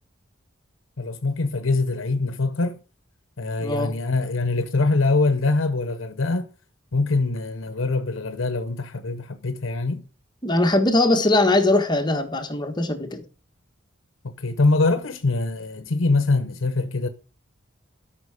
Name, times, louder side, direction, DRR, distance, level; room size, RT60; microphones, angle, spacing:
voice 1, 1.0-2.8 3.4-6.5 6.9-10.0 14.2-17.1, left 3 dB, 80° left, 0.8 m, -23 dB
voice 2, 3.6-3.9 10.4-13.2, left 2 dB, 20° left, 1.4 m, -21 dB
12.5 x 5.7 x 4.9 m
head